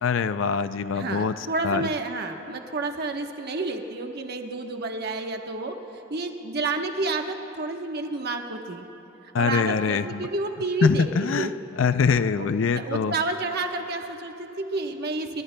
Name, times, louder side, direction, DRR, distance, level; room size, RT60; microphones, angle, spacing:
voice 1, 0.0-1.3 1.6-1.9 9.3-10.3 10.8-11.5 11.8-13.1, left 5 dB, 75° left, 12 dB, 0.4 m, -23 dB
voice 2, 0.9-5.8 6.1-8.8 9.4-11.5 12.4-15.4, right 3 dB, 55° right, 4 dB, 1.1 m, -30 dB
27.0 x 23.5 x 2.2 m, 3.0 s
head